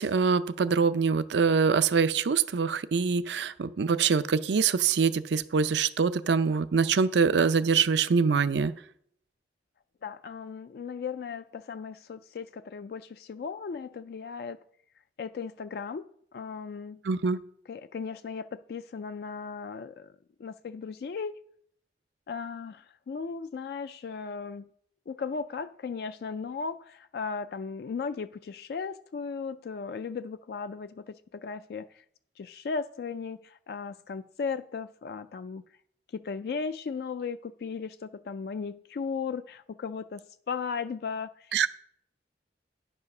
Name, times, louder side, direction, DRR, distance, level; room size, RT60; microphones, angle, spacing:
voice 1, 0.0-8.7 17.0-17.4 41.5-41.7, right 5 dB, 80° right, 0.5 m, -24 dB
voice 2, 10.0-14.6 15.2-16.0 16.3-17.0 17.7-20.1 20.4-21.4 22.3-24.7 25.1-32.0 32.4-35.6 36.1-41.7, left 5 dB, 60° left, 0.3 m, -36 dB
10.0 x 5.4 x 5.9 m
head